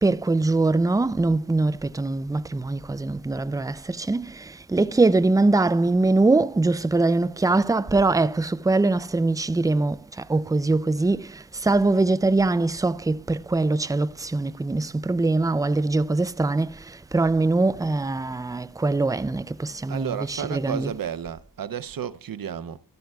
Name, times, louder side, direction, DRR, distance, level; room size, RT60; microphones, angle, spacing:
voice 1, 0.0-20.9, right 2 dB, 10° right, 0.4 m, -23 dB
voice 2, 19.9-22.8, right 8 dB, 90° right, 0.7 m, -32 dB
15.0 x 12.5 x 2.3 m
wide cardioid pair, 70°, 33 cm